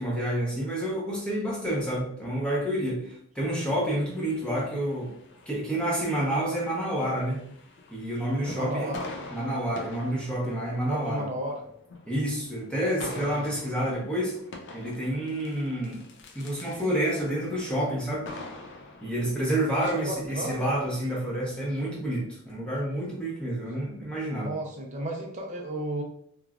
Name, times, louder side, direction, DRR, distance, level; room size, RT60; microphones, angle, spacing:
voice 1, 0.0-5.1 5.5-7.4 7.9-8.9 9.3-11.3 12.1-14.3 14.7-16.0 16.3-18.3 19.0-24.5, right 1 dB, 5° left, -5 dB, 0.8 m, -29 dB
sound 1, 3.5-21.1, left 2 dB, 55° left, 0.4 m, -46 dB
voice 2, 8.5-9.0 10.9-11.6 13.1-13.5 19.7-20.8 24.4-26.0, right 1 dB, 35° right, 1 dB, 0.5 m, -33 dB
3.0 x 2.3 x 2.4 m, 0.65 s
head